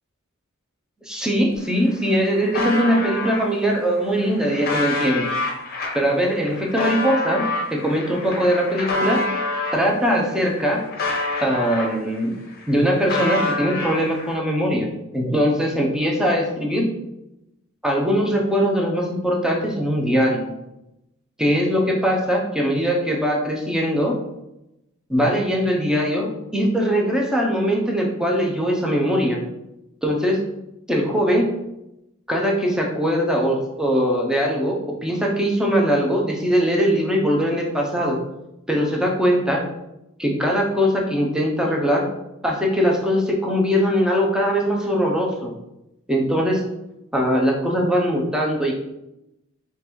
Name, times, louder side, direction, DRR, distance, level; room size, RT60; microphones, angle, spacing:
voice 1, 1.0-5.3 5.9-9.2 9.7-10.8 11.4-12.3 12.7-16.9 17.8-20.5 21.4-24.2 25.1-29.4 30.0-30.5 30.9-31.6 32.3-38.2 38.7-39.6 40.2-42.1 42.4-45.5 46.1-46.6 47.1-48.7, equal, 5° right, -1 dB, 0.6 m, -21 dB
sound 1, 1.5-1.6 1.9-3.4 4.0-9.8 10.3-12.2 12.5-14.4, left 2 dB, 45° left, 0.7 m, -27 dB
3.8 x 3.3 x 3.0 m, 0.90 s
head